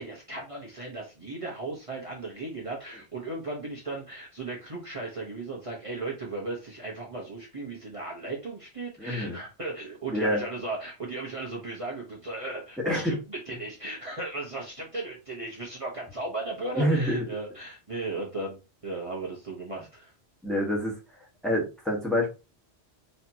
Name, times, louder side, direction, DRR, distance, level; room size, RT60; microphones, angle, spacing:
voice 1, 0.0-20.1, right 2 dB, 30° right, -3 dB, 1.1 m, -36 dB
voice 2, 9.0-9.4 10.1-10.4 12.8-13.2 16.8-17.2 20.4-20.9 21.4-22.3, equal, ahead, -2 dB, 1.4 m, -26 dB
4.2 x 3.2 x 2.8 m, 0.28 s
omnidirectional pair, 1.1 m